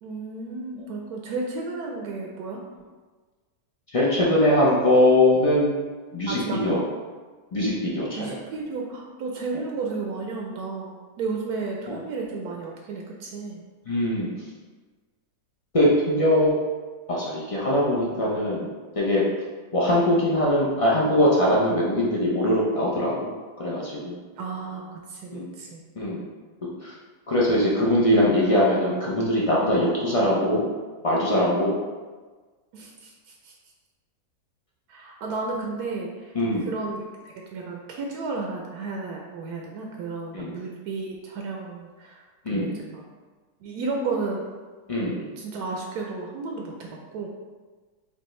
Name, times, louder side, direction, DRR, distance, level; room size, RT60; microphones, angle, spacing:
voice 1, 0.0-2.6 6.3-6.9 8.1-13.6 24.4-25.8 32.7-33.5 34.9-42.2 42.5-43.0 43.6-44.4 45.4-47.3, right 3 dB, 80° right, 0 dB, 1.1 m, -33 dB
voice 2, 3.9-5.8 6.1-6.8 7.5-8.3 11.9-12.0 13.9-14.3 15.7-16.5 17.1-18.7 19.0-19.2 19.7-23.3 23.6-24.2 25.3-25.5 26.0-26.2 26.8-26.9 27.3-30.7 31.0-31.8 36.3-36.7 40.3-40.6 42.4-42.8 44.9-45.3, left 1 dB, 40° left, -6 dB, 0.4 m, -22 dB
5.2 x 2.5 x 3.1 m, 1.4 s
omnidirectional pair, 1.6 m